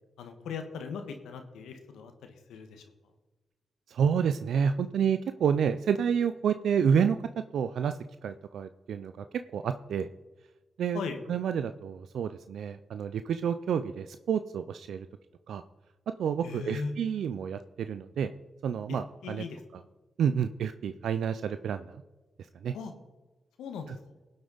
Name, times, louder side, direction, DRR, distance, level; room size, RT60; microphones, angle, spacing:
voice 1, 0.2-2.8 10.9-11.2 16.4-16.9 18.9-19.8 22.7-22.9 23.6-23.9, left 5 dB, 85° left, 6 dB, 1.4 m, -39 dB
voice 2, 3.9-7.2 7.5-9.2 9.5-10.1 10.8-11.0 11.3-15.1 15.5-15.6 16.2-18.3 18.6-19.4 20.2-22.0 22.6-22.7, right 7 dB, 80° right, 10 dB, 0.4 m, -29 dB
18.0 x 7.9 x 4.0 m, 1.2 s
supercardioid pair, 45°, 0 cm